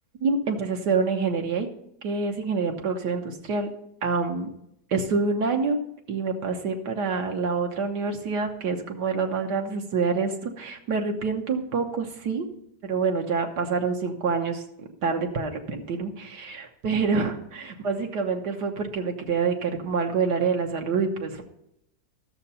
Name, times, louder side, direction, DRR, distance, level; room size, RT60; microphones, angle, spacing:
voice 1, 0.2-1.7 2.0-3.7 4.0-4.5 4.9-5.8 6.1-12.4 12.8-14.6 15.0-21.4, right 4 dB, 75° right, 3 dB, 1.7 m, -26 dB
13.0 x 6.7 x 5.5 m, 0.78 s
omnidirectional pair, 1.8 m